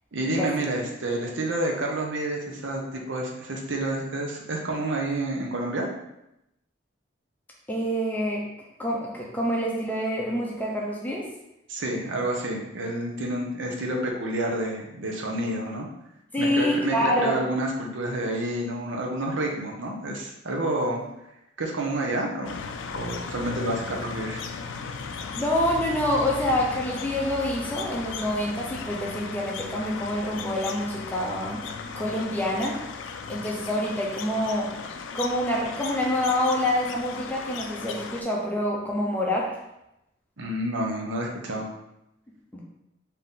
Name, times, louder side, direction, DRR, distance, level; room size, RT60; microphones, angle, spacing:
voice 1, 0.1-5.9 11.7-15.9 16.4-21.0 21.6-24.4 40.4-41.7, right 1 dB, 70° right, 0 dB, 0.7 m, -29 dB
voice 2, 7.7-8.4 8.8-11.3 16.3-17.4 25.3-31.7 32.0-32.8 33.3-34.7 35.1-39.6 42.5-42.6, left 1 dB, 10° left, -3 dB, 0.6 m, -26 dB
sound 1, 22.4-38.2, left 5 dB, 70° left, 0.3 m, -36 dB
3.7 x 2.8 x 3.7 m, 0.86 s
head